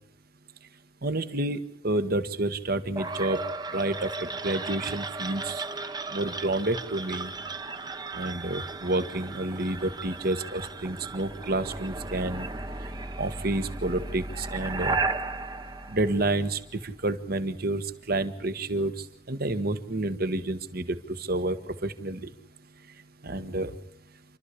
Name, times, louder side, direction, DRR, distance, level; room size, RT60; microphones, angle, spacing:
voice 1, 1.0-3.4 3.7-5.6 6.1-7.3 8.1-12.5 13.2-15.0 15.9-22.2 23.2-23.7, right 2 dB, 55° right, 10 dB, 1.5 m, -29 dB
sound 1, 3.0-16.8, right 3 dB, 20° right, 0.9 m, -35 dB
28.5 x 13.0 x 8.5 m, 0.70 s
head